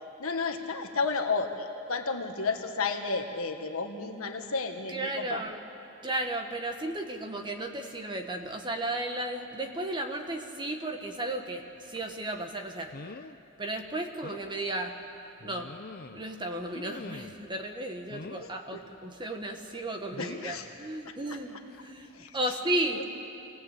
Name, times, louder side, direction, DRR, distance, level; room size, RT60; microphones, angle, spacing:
voice 1, 0.2-5.4 18.7-18.8 20.2-20.7 22.1-22.3 22.9-23.0, left 4 dB, 70° left, 4 dB, 1.7 m, -32 dB
voice 2, 4.9-5.6 6.0-12.9 13.6-15.0 15.4-15.7 16.1-23.0, right 1 dB, 20° right, 4 dB, 1.6 m, -34 dB
sound 1, 12.0-12.1 12.9-13.4 13.8-13.9 14.2-14.5 15.4-16.3 16.7-17.5 18.1-18.5 20.1-20.5 21.7-21.9 22.3-22.4, left 3 dB, 45° left, 0.6 m, -44 dB
25.0 x 17.5 x 8.5 m, 2.7 s
head